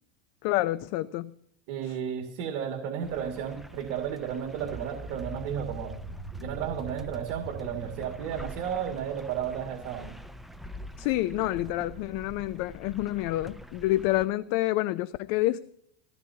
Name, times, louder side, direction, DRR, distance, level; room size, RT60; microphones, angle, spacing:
voice 1, 0.4-1.3 11.0-15.6, left 16 dB, 55° left, 14 dB, 0.6 m, -28 dB
voice 2, 1.7-5.9 6.4-10.2, right 8 dB, 60° right, 2 dB, 2.2 m, -33 dB
sound 1, 3.0-14.3, equal, ahead, 0.4 m, -45 dB
sound 2, 4.5-10.6, right 2 dB, 20° left, 7.4 m, -43 dB
21.0 x 16.5 x 2.8 m, 0.69 s
supercardioid pair, 125°, 35 cm